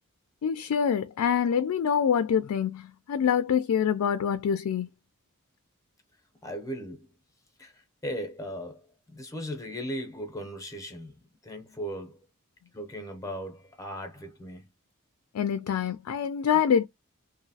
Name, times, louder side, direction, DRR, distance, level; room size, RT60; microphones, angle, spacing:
voice 1, 0.4-4.9 15.3-16.9, left 8 dB, 80° left, 0.3 m, -25 dB
voice 2, 6.4-7.1 7.6-11.1 11.4-12.2 12.7-14.7, equal, 15° left, 0.6 m, -37 dB
2.9 x 2.6 x 2.7 m
head